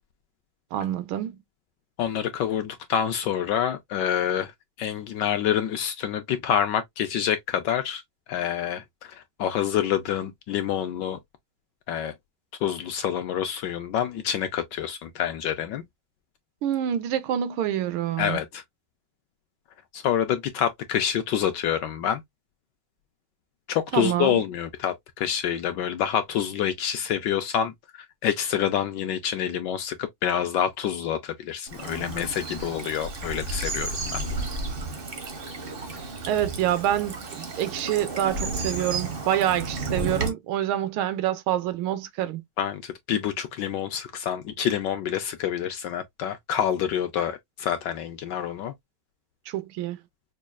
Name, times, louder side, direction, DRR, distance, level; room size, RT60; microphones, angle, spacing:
voice 1, 0.7-1.4 16.6-18.4 23.9-24.4 36.3-42.4 49.5-50.0, right 11 dB, 85° right, 1.4 m, -27 dB
voice 2, 2.0-4.5 4.8-8.0 8.3-11.2 11.9-12.1 12.6-15.8 18.2-18.6 19.9-22.2 23.7-34.2 42.6-48.7, left 9 dB, 75° left, 1.0 m, -27 dB
Bird vocalization bird call bird song / Stream, 31.7-40.3, right 3 dB, 55° right, 0.6 m, -32 dB
5.3 x 2.3 x 2.3 m
omnidirectional pair, 2.2 m